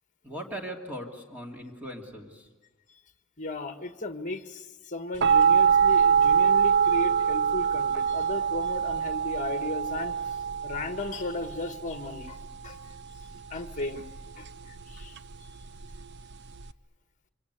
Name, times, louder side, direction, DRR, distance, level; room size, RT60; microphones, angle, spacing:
voice 1, 0.2-2.5, equal, 5° right, 0 dB, 2.7 m, -39 dB
voice 2, 3.4-12.4 12.6-12.9 13.5-14.0 14.4-15.2, left 2 dB, 35° left, 7 dB, 1.6 m, -36 dB
sound 1, 5.2-16.7, right 7 dB, 55° right, 0.8 m, -25 dB
27.5 x 25.5 x 8.2 m, 1.3 s
head